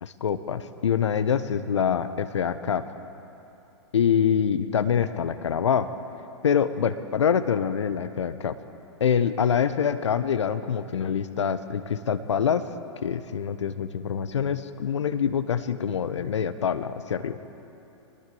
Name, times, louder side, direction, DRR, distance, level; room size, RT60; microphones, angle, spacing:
voice 1, 0.0-2.8 3.9-5.9 6.4-8.5 9.0-12.6 13.0-17.4, left 7 dB, 75° left, 11 dB, 1.1 m, -25 dB
23.0 x 19.5 x 7.9 m, 2.9 s
hypercardioid pair, 110°, 15 cm